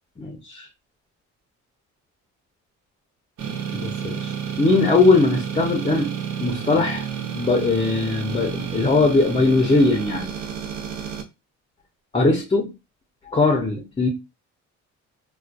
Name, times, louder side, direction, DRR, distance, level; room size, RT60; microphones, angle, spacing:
voice 1, 0.2-0.7 3.7-4.3 4.6-7.1 7.3-10.3 12.1-12.7 13.3-14.1, left 3 dB, 20° left, 0.6 m, -20 dB
sound 1, 3.4-11.2, right 7 dB, 80° right, 0.6 m, -30 dB
2.4 x 2.2 x 2.4 m
cardioid pair, 90°, 30 cm